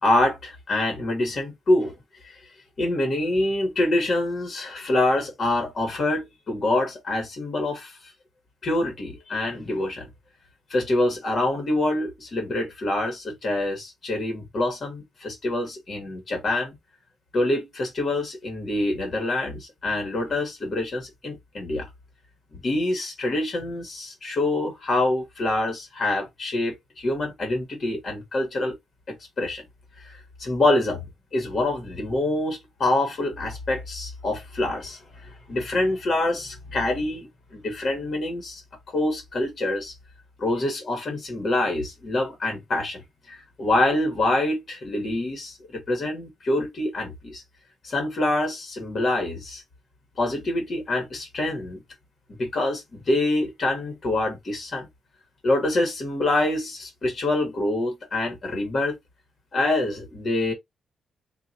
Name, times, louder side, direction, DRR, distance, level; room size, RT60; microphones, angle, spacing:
voice 1, 0.0-1.9 2.2-2.4 2.8-8.1 8.6-10.1 10.7-16.8 17.3-21.9 22.5-28.8 29.1-29.6 30.0-31.0 31.3-38.6 38.9-39.9 40.4-47.4 47.8-49.6 50.2-51.8 52.4-54.9 55.4-59.0 59.5-60.5, left 2 dB, 40° left, 1.4 m, -26 dB
3.7 x 2.5 x 2.7 m
cardioid pair, 145°, 0 cm